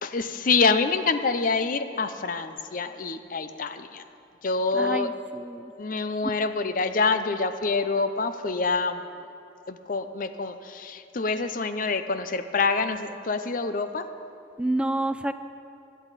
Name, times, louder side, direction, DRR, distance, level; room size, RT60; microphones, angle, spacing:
voice 1, 0.0-4.0 4.4-5.1 5.8-9.1 9.7-14.1, left 4 dB, 45° left, 10 dB, 0.5 m, -26 dB
voice 2, 4.7-5.7 14.6-15.3, right 1 dB, 5° right, 10 dB, 0.3 m, -28 dB
17.5 x 11.0 x 4.1 m, 2.7 s
head